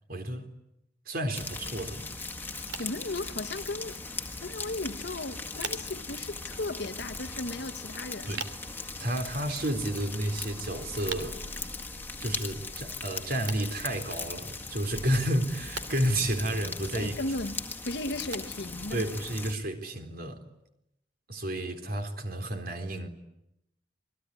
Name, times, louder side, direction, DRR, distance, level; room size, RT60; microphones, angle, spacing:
voice 1, 0.1-0.5 1.1-2.1 8.3-8.5 8.8-11.4 12.2-17.2 18.9-20.4 21.3-23.1, right 1 dB, 55° right, 4.0 m, -31 dB
sound 1, 1.3-19.5, left 3 dB, 10° left, 2.0 m, -39 dB
sound 2, 2.5-19.7, right 6 dB, 70° right, 2.8 m, -48 dB
voice 2, 2.8-4.0 4.4-8.4 16.9-19.1, left 2 dB, 65° left, 1.2 m, -36 dB
28.0 x 21.5 x 9.8 m
head